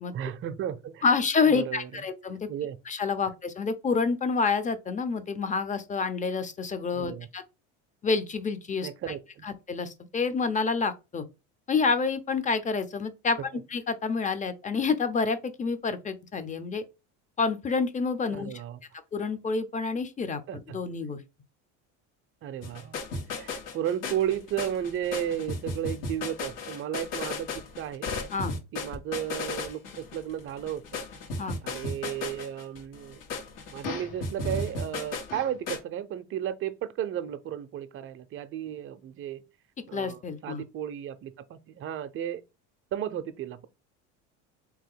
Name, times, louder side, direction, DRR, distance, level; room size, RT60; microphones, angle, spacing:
voice 1, 0.1-1.1 1.5-1.9 2.5-2.8 6.9-7.3 8.8-9.4 18.3-18.8 20.5-20.8 22.4-23.0 23.3-28.1 28.7-31.0 31.6-33.2 33.7-39.4 39.9-42.4 42.9-43.7, right 10 dB, 40° right, 0.5 m, -34 dB
voice 2, 1.0-2.5 2.9-7.4 8.0-9.1 9.4-11.2 11.7-13.4 13.7-16.8 17.4-18.5 19.1-21.2 28.3-28.5 31.4-31.6 39.9-40.6, left 4 dB, 20° left, 0.7 m, -28 dB
sound 1, 22.6-35.8, left 3 dB, 70° left, 1.5 m, -35 dB
3.7 x 2.9 x 3.7 m
supercardioid pair, 105°, 34 cm